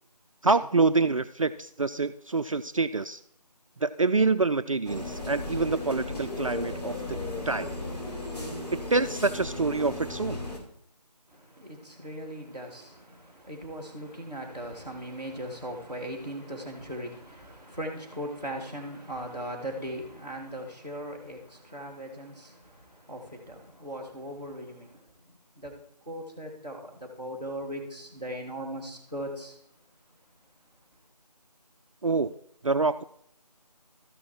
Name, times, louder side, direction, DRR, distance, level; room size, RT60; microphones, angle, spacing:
voice 1, 0.4-3.2 3.8-7.2 7.4-7.7 8.7-10.4 32.0-32.3 32.6-33.0, right 3 dB, 50° right, 0.4 m, -26 dB
sound 1, 4.8-10.6, left 2 dB, 65° left, 4.6 m, -35 dB
voice 2, 11.3-25.7 26.0-29.6, right 1 dB, 10° left, 2.3 m, -39 dB
13.5 x 5.8 x 4.8 m
figure-of-eight pair, 170°, 21 cm